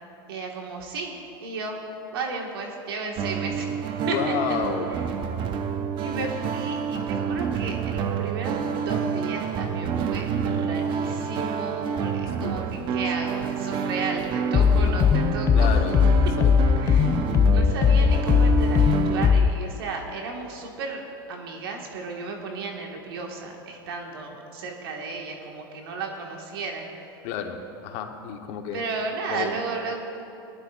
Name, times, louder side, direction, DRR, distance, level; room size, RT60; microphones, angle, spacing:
voice 1, 0.3-1.8 2.1-3.7 4.1-4.3 6.0-15.7 16.8-26.8 28.7-30.0, right 3 dB, 80° right, 1 dB, 1.9 m, -34 dB
sound 1, 3.2-19.3, right 6 dB, 40° right, 0.7 m, -28 dB
voice 2, 4.0-4.9 12.4-12.9 15.5-16.8 27.2-28.8 29.3-29.6, left 8 dB, 55° left, 4 dB, 1.3 m, -31 dB
sound 2, 14.5-19.5, left 6 dB, 25° left, 0.3 m, -19 dB
19.5 x 11.5 x 2.6 m, 2.8 s
hypercardioid pair, 110°, 12 cm